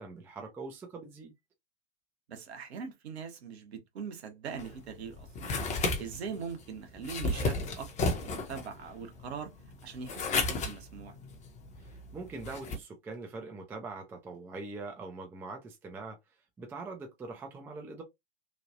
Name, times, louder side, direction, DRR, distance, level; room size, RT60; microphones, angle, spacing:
voice 1, 0.0-1.3 12.1-16.2 16.6-18.0, right 3 dB, 5° right, 0.3 m, -42 dB
voice 2, 2.3-5.3 6.0-9.5 9.8-11.2, right 6 dB, 65° right, 1.1 m, -41 dB
sound 1, 4.6-12.8, left 3 dB, 20° left, 0.7 m, -34 dB
3.2 x 2.3 x 2.5 m
hypercardioid pair, 105°, 35 cm